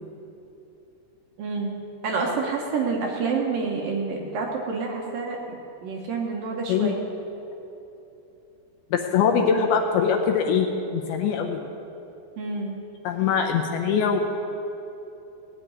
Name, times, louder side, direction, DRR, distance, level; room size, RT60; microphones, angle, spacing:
voice 1, 1.4-1.8 2.0-7.0 12.4-12.8, right 4 dB, 70° right, 0 dB, 2.4 m, -28 dB
voice 2, 8.9-11.6 13.0-14.2, left 6 dB, 75° left, 3 dB, 2.5 m, -22 dB
17.5 x 6.0 x 9.6 m, 2.9 s
omnidirectional pair, 4.9 m